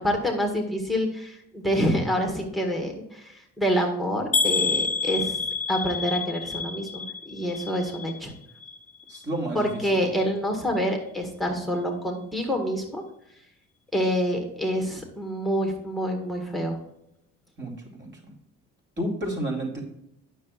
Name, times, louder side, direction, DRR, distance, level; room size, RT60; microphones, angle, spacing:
voice 1, 0.0-5.4 5.7-8.3 9.5-13.0 13.9-16.8, equal, ahead, 2 dB, 1.5 m, -27 dB
sound 1, 4.3-8.3 8.6-9.2 9.7-9.8 10.2-10.3, left 4 dB, 25° left, 0.6 m, -28 dB
voice 2, 9.1-10.1 17.6-17.7 18.0-18.1 19.0-19.8, right 1 dB, 35° right, -1 dB, 2.8 m, -30 dB
9.6 x 6.6 x 2.4 m, 0.82 s
cardioid pair, 90°, 30 cm